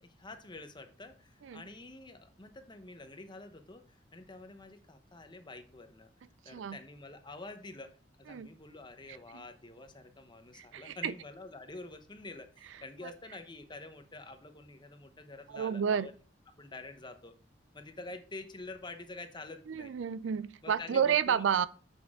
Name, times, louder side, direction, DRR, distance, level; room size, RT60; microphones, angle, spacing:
voice 1, 0.0-6.1 6.4-16.1 16.6-17.4 17.7-19.9 20.6-21.4, left 2 dB, 25° left, 0.9 m, -48 dB
voice 2, 10.5-11.1 15.5-16.1 19.7-21.7, right 7 dB, 90° right, 0.4 m, -30 dB
7.0 x 6.2 x 3.6 m
head